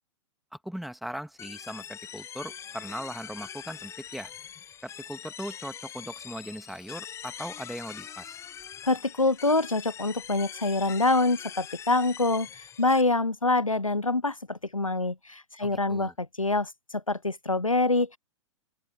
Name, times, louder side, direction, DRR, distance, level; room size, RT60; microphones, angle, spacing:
voice 1, 0.5-4.3 4.8-8.4 15.6-16.1, equal, ahead, 2.3 m, -39 dB
sound 1, 1.4-13.0, left 9 dB, 15° left, 1.2 m, -43 dB
voice 2, 8.8-18.2, left 2 dB, 90° left, 0.7 m, -26 dB
open air
figure-of-eight pair, 105°, 17 cm